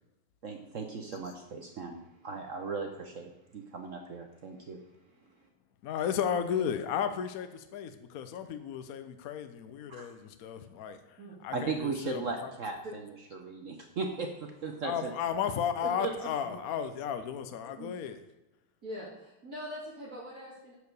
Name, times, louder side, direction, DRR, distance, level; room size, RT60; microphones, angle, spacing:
voice 1, 0.4-4.8 9.9-10.1 11.5-15.1 15.8-16.1, right 4 dB, 60° right, 4 dB, 0.8 m, -37 dB
voice 2, 5.8-12.5 14.8-18.2, left 8 dB, 70° left, 9 dB, 0.8 m, -34 dB
voice 3, 18.8-20.7, equal, 45° right, -8 dB, 2.8 m, -43 dB
9.8 x 4.7 x 6.7 m, 0.99 s
omnidirectional pair, 2.3 m